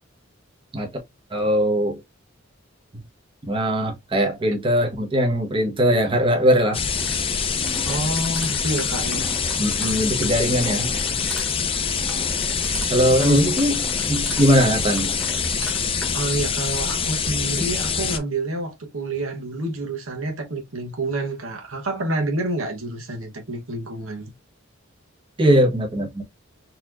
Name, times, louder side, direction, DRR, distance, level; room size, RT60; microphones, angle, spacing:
voice 1, 1.3-2.0 3.5-6.8 9.6-10.9 12.9-13.8 14.1-15.2 25.4-26.2, equal, 25° right, 1.0 m, -20 dB
sound 1, 6.7-18.2, left 6 dB, 25° left, 0.5 m, -25 dB
sound 2, 6.9-16.2, equal, ahead, 1.2 m, -38 dB
voice 2, 7.8-9.3 13.2-13.4 16.1-24.3, right 2 dB, 75° right, 1.1 m, -28 dB
4.1 x 2.9 x 2.5 m
head